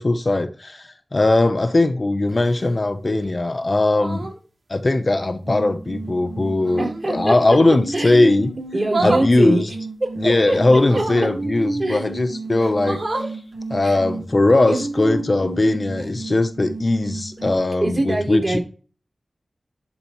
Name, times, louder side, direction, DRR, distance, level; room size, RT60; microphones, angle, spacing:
voice 1, 0.0-4.3 4.7-8.5 9.0-9.7 10.2-13.0 13.7-18.6, left 2 dB, 45° left, 0.7 m, -19 dB
sound 1, 2.3-2.8 3.9-4.4 6.6-7.0 8.8-9.3 10.8-11.3 12.1-12.2 12.6-13.3 15.0-15.2, right 2 dB, 60° right, 2.1 m, -28 dB
sound 2, 5.5-17.5, right 2 dB, 85° right, 1.1 m, -33 dB
voice 2, 6.8-7.4 7.9-8.2 8.7-9.6 10.0-11.0 11.8-12.1 13.8-14.0 14.7-14.8 16.0-16.1 17.8-18.6, right 2 dB, 45° right, 4.3 m, -24 dB
11.0 x 4.3 x 3.0 m
wide cardioid pair, 65°, 0 cm